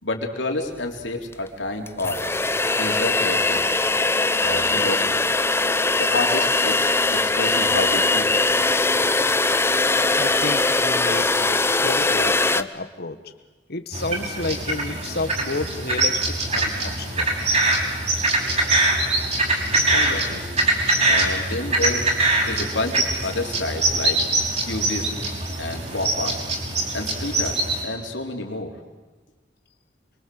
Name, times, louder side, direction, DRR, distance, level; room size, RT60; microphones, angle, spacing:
voice 1, 0.0-2.2 2.8-3.6 4.4-5.3 6.0-8.3 19.7-20.5 21.0-22.1 22.4-24.2 24.6-25.3 25.6-26.4 26.9-28.8, left 2 dB, 80° left, 3 dB, 4.0 m, -29 dB
sound 1, 1.3-1.4 1.9-12.6, left 3 dB, 15° left, 0.8 m, -21 dB
voice 2, 10.2-13.2 13.7-17.3, left 3 dB, 60° left, 9 dB, 1.7 m, -31 dB
sound 2, 13.9-27.8, right 2 dB, 40° right, 5.7 m, -23 dB
27.0 x 23.5 x 8.0 m, 1.2 s
head